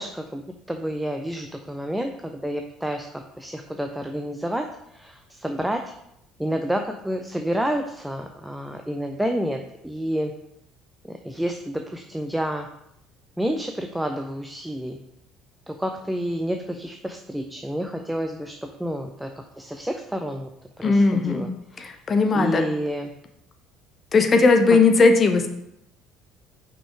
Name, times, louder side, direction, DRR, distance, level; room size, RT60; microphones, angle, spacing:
voice 1, 0.0-5.9 6.4-10.3 11.0-12.7 13.4-15.0 15.7-20.5 20.8-22.0 22.3-23.1 24.7-24.8, equal, 5° right, 4 dB, 0.6 m, -29 dB
voice 2, 20.8-21.5 21.8-22.6 24.1-25.5, left 3 dB, 35° left, 5 dB, 0.9 m, -18 dB
5.7 x 5.4 x 4.8 m, 0.79 s
figure-of-eight pair, 55°, 0 cm